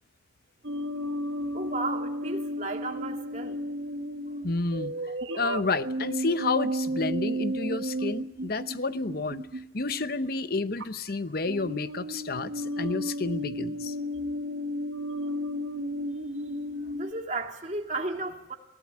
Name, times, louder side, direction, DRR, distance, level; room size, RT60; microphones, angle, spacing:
sound 1, 0.6-10.0 10.8-11.1 11.5-17.1, equal, 75° right, 1.4 m, -33 dB
voice 1, 1.5-3.6 16.9-18.5, right 2 dB, 35° right, 2 dB, 2.4 m, -34 dB
voice 2, 4.4-4.9 5.3-9.4 9.7-13.9, left 3 dB, 50° left, 13 dB, 0.8 m, -30 dB
23.0 x 17.5 x 8.6 m, 0.86 s
head